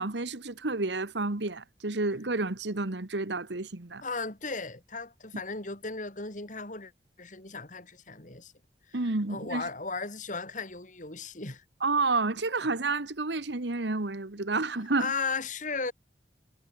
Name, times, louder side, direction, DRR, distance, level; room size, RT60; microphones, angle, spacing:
voice 1, 0.0-4.0 8.9-9.7 11.8-15.1, right 3 dB, 80° right, 1.5 m, -30 dB
voice 2, 4.0-6.9 7.2-8.5 9.3-11.6 15.0-15.9, left 4 dB, 45° left, 4.4 m, -36 dB
head